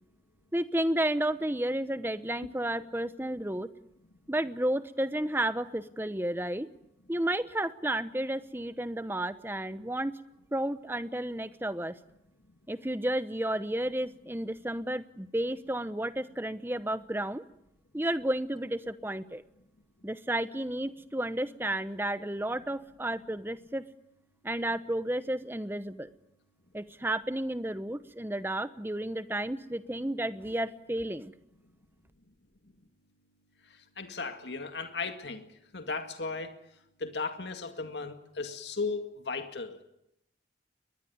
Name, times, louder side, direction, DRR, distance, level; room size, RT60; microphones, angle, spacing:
voice 1, 0.5-3.7 4.3-6.7 7.1-10.1 10.5-12.0 12.7-17.4 17.9-19.4 20.0-23.8 24.4-26.1 26.7-31.3, right 1 dB, 15° right, 0.9 m, -32 dB
voice 2, 34.0-35.5 35.7-36.5 37.0-39.8, left 4 dB, 80° left, 2.0 m, -36 dB
22.0 x 21.0 x 9.5 m
head